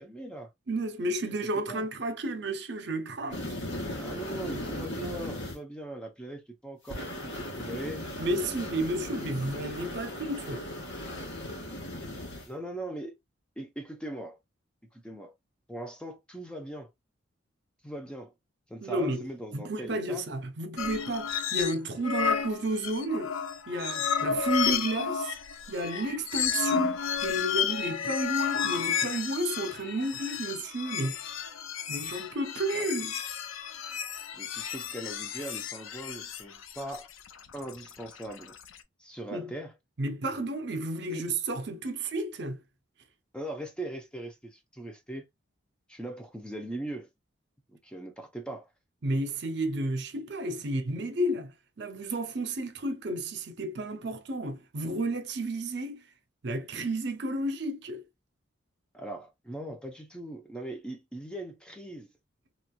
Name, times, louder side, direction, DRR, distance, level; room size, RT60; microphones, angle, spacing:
voice 1, 0.0-0.5 1.7-1.9 4.0-8.0 12.4-13.1 13.6-14.4 14.9-15.3 15.7-16.9 17.8-18.3 18.7-20.3 24.2-24.4 32.7-32.8 34.3-37.1 37.5-38.6 39.0-39.7 41.1-41.2 43.3-45.2 45.9-47.1 47.8-48.7 58.9-62.1, right 1 dB, 5° left, 0.6 m, -40 dB
voice 2, 0.7-3.4 8.2-10.7 18.8-19.3 19.5-23.4 23.7-25.4 25.7-31.2 31.9-33.2 39.3-39.5 40.0-42.6 49.0-56.1 56.4-58.0, right 1 dB, 55° right, 0.5 m, -32 dB
sound 1, 3.3-5.5 6.9-12.4, left 1 dB, 60° left, 1.3 m, -37 dB
sound 2, 20.8-21.8 22.0-38.8, left 7 dB, 85° left, 0.5 m, -32 dB
3.1 x 3.0 x 2.2 m
head